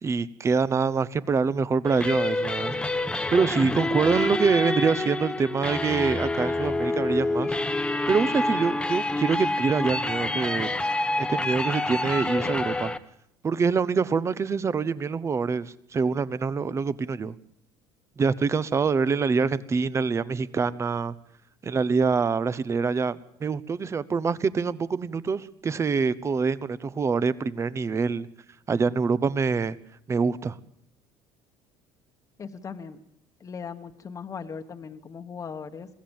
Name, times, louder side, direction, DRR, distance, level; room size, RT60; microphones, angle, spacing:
voice 1, 0.0-2.8 3.3-7.6 8.1-10.7 11.2-12.9 13.4-17.3 18.2-21.1 21.6-28.3 28.7-29.8 30.1-30.6, right 5 dB, 25° right, 17 dB, 1.0 m, -25 dB
sound 1, 1.8-13.0, left 2 dB, 10° left, 1.2 m, -27 dB
voice 2, 32.4-33.0 33.4-35.9, left 6 dB, 30° left, 5 dB, 1.3 m, -38 dB
22.0 x 16.0 x 7.2 m, 0.75 s
supercardioid pair, 105°, 10 cm